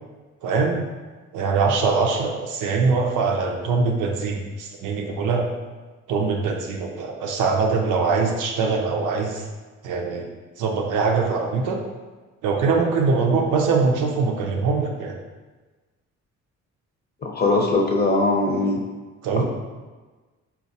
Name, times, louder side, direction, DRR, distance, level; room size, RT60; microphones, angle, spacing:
voice 1, 0.4-0.8 1.3-5.5 6.1-9.4 9.8-10.3 10.6-11.8 12.4-15.2 19.2-19.4, right 4 dB, 85° right, 2 dB, 0.6 m, -22 dB
voice 2, 17.2-18.8 19.4-19.5, left 2 dB, 35° left, 0 dB, 0.7 m, -21 dB
4.0 x 2.4 x 2.7 m, 1.3 s
cardioid pair, 90°, 30 cm